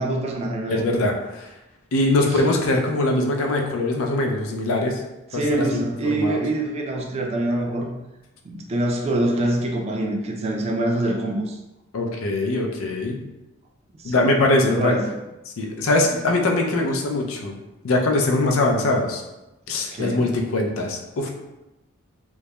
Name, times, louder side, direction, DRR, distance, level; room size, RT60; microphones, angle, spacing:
voice 1, 0.0-0.8 2.3-2.4 5.3-7.9 8.4-11.6 14.0-14.3 14.6-15.0 19.9-20.2, right 1 dB, 30° right, 0 dB, 0.3 m, -25 dB
voice 2, 0.7-1.5 1.9-5.0 5.3-5.8 6.1-6.4 11.9-13.2 14.0-14.9 15.5-17.6 17.8-19.2 19.7-21.3, left 2 dB, 80° left, 2 dB, 0.4 m, -22 dB
2.2 x 2.0 x 2.8 m, 0.98 s
head